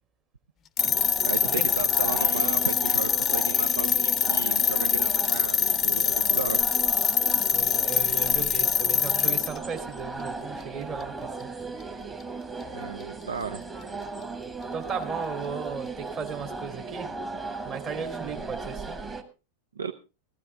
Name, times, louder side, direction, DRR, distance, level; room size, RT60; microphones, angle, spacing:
sound 1, 0.8-9.6, left 8 dB, 25° left, 0.7 m, -24 dB
sound 2, 0.8-19.2, right 3 dB, 15° right, 1.8 m, -37 dB
voice 1, 1.2-6.6 12.7-13.6 19.8-19.9, right 6 dB, 70° right, 10 dB, 0.6 m, -34 dB
voice 2, 7.5-11.5 14.7-17.1 17.6-19.0, right 6 dB, 35° right, 5 dB, 2.9 m, -36 dB
15.0 x 14.5 x 3.4 m, 0.30 s
figure-of-eight pair, 90°, 0 cm